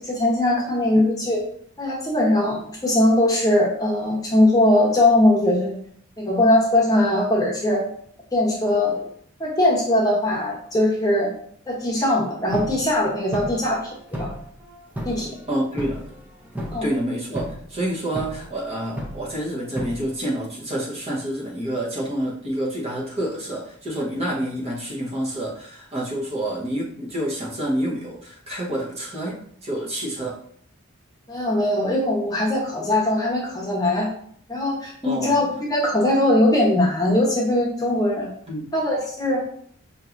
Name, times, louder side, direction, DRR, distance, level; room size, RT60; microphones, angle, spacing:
voice 1, 0.0-1.4 1.8-5.7 6.2-7.8 8.3-9.1 9.4-11.3 11.7-14.3 15.0-15.3 16.7-16.9 31.3-34.1 34.5-38.3 38.7-39.4, left 1 dB, 15° left, -3 dB, 0.9 m, -20 dB
sound 1, 12.4-17.0 17.3-17.7 18.1-20.2, equal, 10° right, 0.6 m, -34 dB
voice 2, 15.5-16.0 16.8-30.4 35.0-35.5 38.5-38.7, right 1 dB, 30° right, -4 dB, 1.0 m, -28 dB
5.5 x 2.9 x 2.5 m, 0.62 s
head